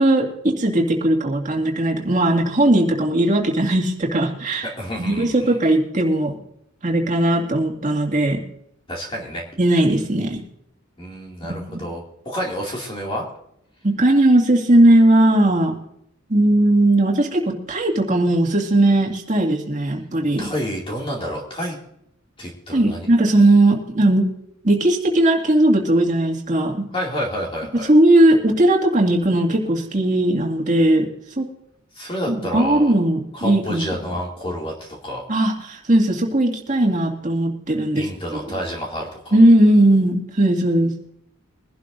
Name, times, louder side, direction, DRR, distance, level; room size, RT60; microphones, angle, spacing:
voice 1, 0.0-4.7 5.0-6.3 6.8-8.4 9.6-10.4 11.7-11.8 13.8-15.8 16.3-20.5 22.7-24.3 24.6-26.9 27.7-31.1 31.4-31.5 32.3-33.9 35.3-38.1 39.3-40.9, right 1 dB, 40° right, 0 dB, 2.3 m, -18 dB
voice 2, 4.6-5.6 8.9-9.4 11.0-13.3 20.4-21.8 22.4-23.1 26.9-27.9 31.9-33.0 33.3-35.2 38.0-39.4, equal, 25° left, -2 dB, 2.4 m, -29 dB
23.0 x 12.0 x 2.6 m, 0.75 s
head